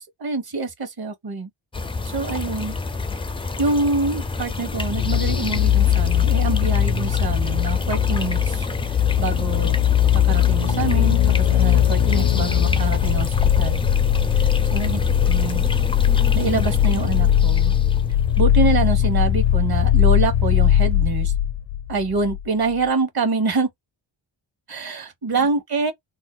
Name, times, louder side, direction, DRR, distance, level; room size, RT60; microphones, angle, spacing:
voice 1, 0.0-1.5 2.0-2.7 3.6-8.7 9.2-9.8 10.1-13.8 14.3-15.0 15.3-15.7 16.3-17.7 18.4-21.3 21.9-23.7 24.7-25.9, right 4 dB, 50° right, 1.1 m, -25 dB
sound 1, 1.7-19.9, left 3 dB, 15° left, 0.3 m, -27 dB
sound 2, 4.9-22.5 22.7-22.8, left 11 dB, 75° left, 0.6 m, -20 dB
2.7 x 2.2 x 3.8 m
wide cardioid pair, 110°, 47 cm